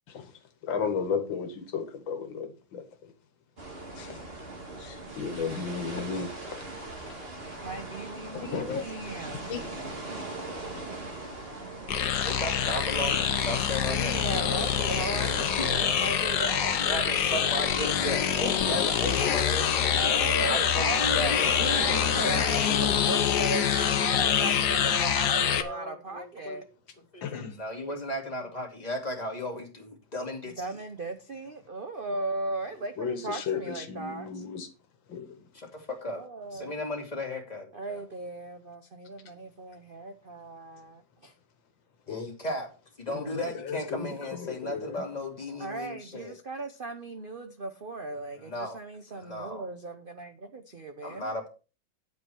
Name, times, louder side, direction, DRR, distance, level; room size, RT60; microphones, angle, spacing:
voice 1, 0.6-2.9 4.0-4.2 4.8-6.3 8.3-8.9 9.5-9.6 27.2-27.6 33.0-34.7 35.1-35.2 42.1-42.3 43.1-43.3 43.6-44.0 44.3-45.0, left 6 dB, 85° left, 2.1 m, -34 dB
sound 1, 3.6-22.9, right 2 dB, 30° right, 2.2 m, -39 dB
voice 2, 7.6-9.5 13.6-17.0 20.0-26.6 30.6-34.4 36.0-36.8 37.7-41.3 45.6-51.3, right 3 dB, 45° right, 0.7 m, -37 dB
sound 2, 11.9-25.6, left 8 dB, 65° left, 1.5 m, -25 dB
voice 3, 12.2-14.2 15.6-15.7 16.3-16.5 16.8-21.6 24.6-26.6 27.1-30.5 35.7-36.2 36.5-38.0 42.1-42.7 43.0-46.3 48.4-48.8 49.1-49.7 51.0-51.5, left 1 dB, 20° left, 2.6 m, -36 dB
9.5 x 8.1 x 4.6 m
omnidirectional pair, 2.1 m